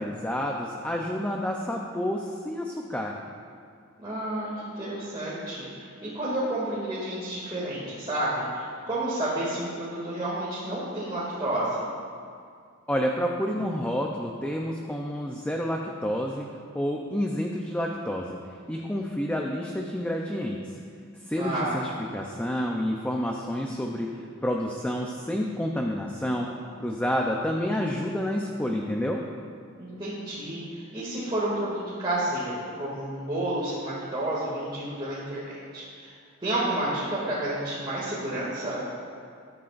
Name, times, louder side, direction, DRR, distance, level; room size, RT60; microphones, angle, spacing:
voice 1, 0.0-3.2 12.9-16.5 16.7-18.4 18.7-20.7 21.3-29.2, equal, 5° left, 0 dB, 0.6 m, -29 dB
voice 2, 4.0-11.8 21.4-21.8 29.8-36.1 36.4-38.8, right 1 dB, 25° right, -10 dB, 2.4 m, -30 dB
20.0 x 9.7 x 2.6 m, 2.2 s
head